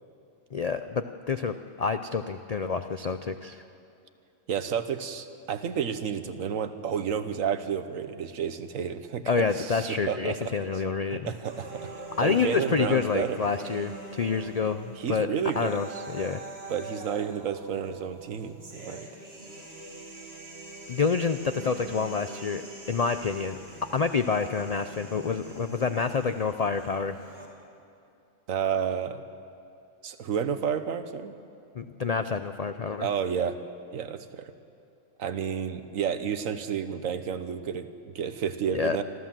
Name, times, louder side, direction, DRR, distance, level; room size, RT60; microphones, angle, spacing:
voice 1, 0.5-3.6 9.3-11.3 12.2-15.3 15.6-16.4 20.9-22.6 22.9-23.6 23.9-27.2 31.8-33.1 38.7-39.0, left 5 dB, 65° left, 9 dB, 0.3 m, -28 dB
voice 2, 4.5-10.5 11.1-11.9 12.2-13.4 15.0-15.8 16.7-19.1 28.5-29.2 30.0-31.3 33.0-33.6 33.9-34.5 35.2-39.0, right 7 dB, 75° right, 10 dB, 1.3 m, -31 dB
sound 1, 11.5-27.5, right 2 dB, 50° right, 2.6 m, -44 dB
25.5 x 13.5 x 7.5 m, 2.6 s
omnidirectional pair, 1.4 m